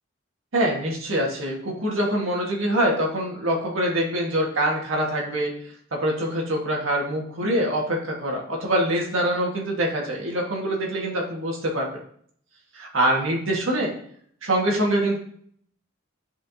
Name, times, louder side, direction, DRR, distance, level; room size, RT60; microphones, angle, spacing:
voice 1, 0.5-5.5 6.0-11.9 12.7-13.9 14.4-15.2, right 1 dB, 75° right, -1 dB, 1.7 m, -24 dB
11.5 x 5.0 x 2.8 m, 0.63 s
head